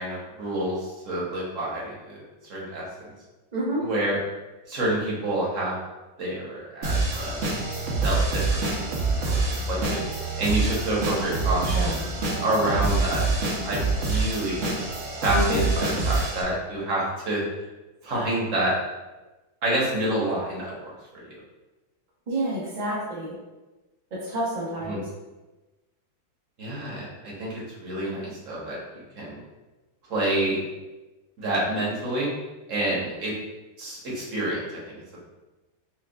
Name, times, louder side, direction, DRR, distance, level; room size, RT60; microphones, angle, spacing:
voice 1, 0.0-2.2 2.5-3.1 3.8-4.2 4.7-5.8 6.2-7.4 8.0-10.0 10.4-12.0 12.4-13.2 13.6-14.6 15.2-17.4 18.0-18.7 19.6-21.3 24.9-25.0 26.6-29.4 30.1-30.6 31.4-32.3 32.7-33.3 33.8-35.2, right 1 dB, 50° right, -5 dB, 1.1 m, -28 dB
voice 2, 3.5-3.9 11.7-12.1 15.3-15.6 22.3-23.4 24.1-25.0, equal, 90° right, -5 dB, 0.3 m, -29 dB
sound 1, 6.8-16.4, right 3 dB, 65° right, 0.7 m, -26 dB
6.1 x 2.2 x 2.2 m, 1.1 s
omnidirectional pair, 2.1 m